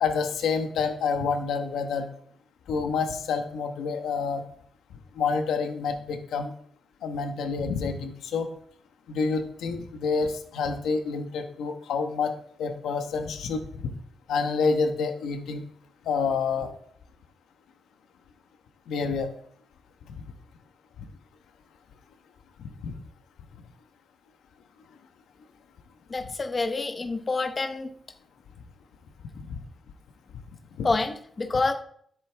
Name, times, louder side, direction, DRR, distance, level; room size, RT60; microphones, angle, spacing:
voice 1, 0.0-2.1 2.7-4.4 5.1-6.5 7.0-8.5 9.1-12.3 12.6-13.6 14.3-15.6 16.0-16.7 18.9-19.3 22.8-22.9 30.8-30.9, left 5 dB, 85° left, 7 dB, 1.3 m, -28 dB
voice 2, 26.1-27.9 30.8-31.7, left 3 dB, 25° left, 7 dB, 1.0 m, -27 dB
13.5 x 8.3 x 3.5 m, 0.62 s
cardioid pair, 140°, 0 cm